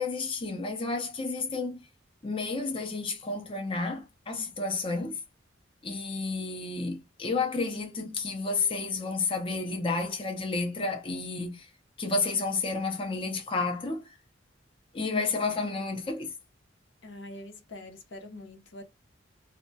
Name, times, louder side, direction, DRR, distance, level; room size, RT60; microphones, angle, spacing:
voice 1, 0.0-1.9 2.2-5.2 5.8-11.7 12.0-14.2 14.9-16.3, left 3 dB, 30° left, 0.5 m, -31 dB
voice 2, 17.0-18.8, left 1 dB, 65° left, 0.7 m, -44 dB
2.2 x 2.1 x 3.8 m
head